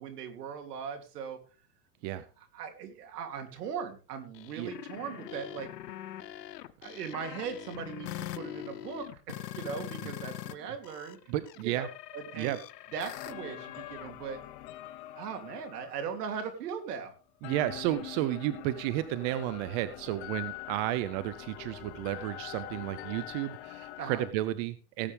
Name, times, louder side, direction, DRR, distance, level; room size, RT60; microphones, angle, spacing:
voice 1, 0.0-1.4 2.5-5.7 6.8-11.2 11.6-12.6 12.9-14.4 15.1-17.1 24.0-24.2, right 7 dB, 75° right, 6 dB, 3.1 m, -39 dB
sound 1, 4.3-10.5 10.8-14.1, left 13 dB, 85° left, 1.1 m, -43 dB
voice 2, 11.3-11.9 12.3-12.6 17.4-25.1, right 14 dB, 40° right, 14 dB, 0.8 m, -32 dB
sound 2, 13.1-17.1 17.4-24.3, left 15 dB, 45° left, 1.1 m, -44 dB
18.0 x 8.5 x 3.5 m, 0.35 s
supercardioid pair, 140°, 47 cm